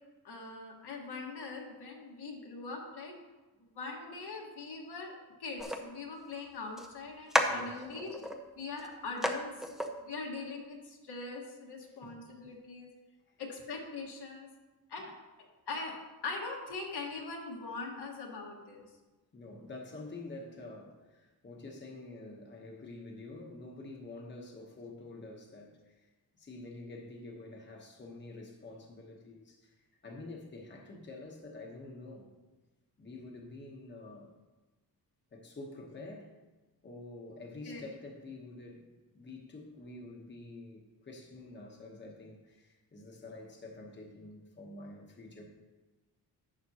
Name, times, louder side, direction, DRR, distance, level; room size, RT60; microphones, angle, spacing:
voice 1, 0.2-3.1 3.6-8.3 8.5-9.5 10.0-12.9 13.4-14.5 14.9-15.1 15.4-15.9 16.2-18.8 37.6-37.8, left 3 dB, 85° left, -1 dB, 1.7 m, -42 dB
sound 1, 5.6-5.8 6.8-6.9 7.3-8.4 8.8-8.9 9.2-9.4 9.6-9.9, equal, ahead, 0.5 m, -32 dB
voice 2, 7.5-7.9 11.8-12.1 13.3-13.4 19.3-32.3 33.0-34.4 35.3-36.3 36.8-38.9 39.1-45.5, left 2 dB, 30° left, 0 dB, 1.0 m, -48 dB
11.0 x 7.3 x 2.9 m, 1.2 s
wide cardioid pair, 165°, 39 cm